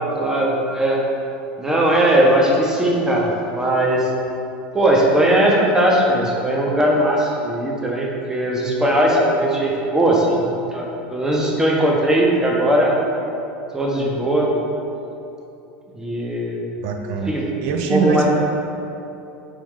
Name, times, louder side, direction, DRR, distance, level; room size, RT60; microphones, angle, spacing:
voice 1, 0.1-1.0 1.6-4.1 4.7-10.9 11.1-12.9 13.7-14.5 15.9-16.6 17.3-17.5 17.9-18.3, right 1 dB, 10° right, -2 dB, 0.7 m, -18 dB
voice 2, 16.8-17.3 17.6-18.3, right 6 dB, 65° right, 4 dB, 0.5 m, -22 dB
4.8 x 2.6 x 3.6 m, 2.9 s
supercardioid pair, 105°, 6 cm